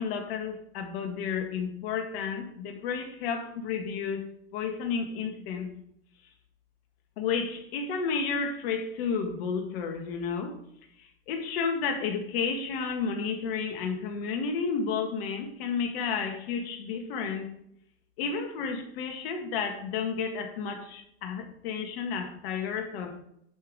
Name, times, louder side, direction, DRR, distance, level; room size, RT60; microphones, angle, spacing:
voice 1, 0.0-4.2 4.5-5.7 7.2-10.6 11.0-17.5 18.2-23.2, left 5 dB, 65° left, 5 dB, 2.0 m, -31 dB
11.0 x 5.3 x 4.9 m, 0.74 s
hypercardioid pair, 105°, 32 cm